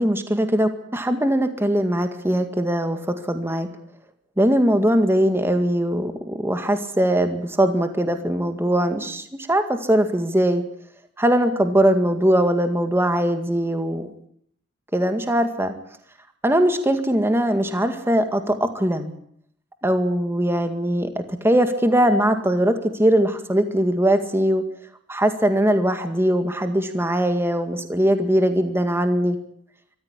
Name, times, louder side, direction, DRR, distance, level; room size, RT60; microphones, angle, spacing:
voice 1, 0.0-3.0 3.3-3.7 4.4-10.6 11.2-14.1 14.9-15.7 16.4-19.1 19.8-24.6 25.1-29.4, right 1 dB, 15° right, 7 dB, 2.0 m, -21 dB
24.0 x 14.5 x 9.8 m, 0.67 s
head